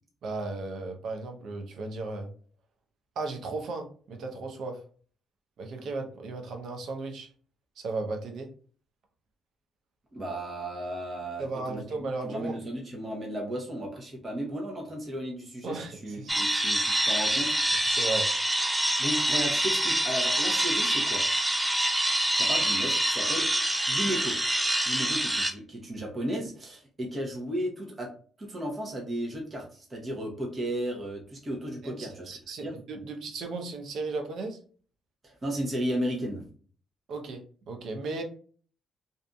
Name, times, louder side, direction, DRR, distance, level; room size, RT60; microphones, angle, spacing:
voice 1, 0.2-2.3 3.2-4.8 5.6-7.3 7.8-8.5 11.4-12.6 15.6-16.3 16.8-16.9 17.9-18.3 31.8-34.6 37.1-37.4 37.7-38.2, right 3 dB, 70° right, 4 dB, 0.6 m, -35 dB
voice 2, 10.1-11.8 12.2-18.0 19.0-21.2 22.3-23.5 23.9-24.4 24.9-28.1 28.4-32.3 32.6-32.8 35.2-36.5, equal, 30° right, -1 dB, 0.8 m, -34 dB
sound 1, 16.3-25.5, right 1 dB, 10° right, 0.4 m, -26 dB
2.6 x 2.5 x 2.2 m, 0.43 s
cardioid pair, 90°, 0 cm